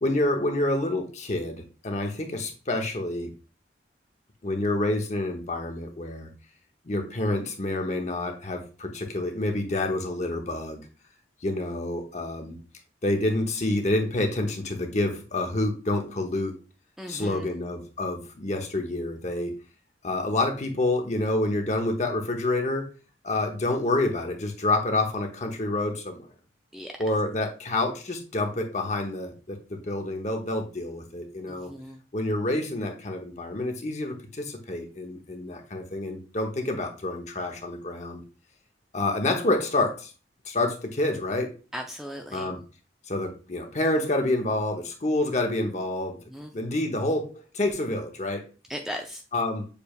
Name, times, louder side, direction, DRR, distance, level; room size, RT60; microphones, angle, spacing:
voice 1, 0.0-3.3 4.4-6.3 6.8-10.8 11.4-12.6 13.0-16.6 17.1-19.5 20.0-22.9 23.2-26.2 27.0-31.7 32.1-38.2 38.9-40.1 40.4-41.5 42.3-42.6 43.1-46.2 46.5-47.3 47.5-48.4 49.3-49.7, left 2 dB, 40° left, 4 dB, 0.9 m, -28 dB
voice 2, 17.0-17.5 26.7-26.9 31.5-32.0 41.7-42.6 46.3-46.5 48.7-49.2, equal, ahead, 2 dB, 0.3 m, -37 dB
6.7 x 3.3 x 2.3 m, 0.33 s
head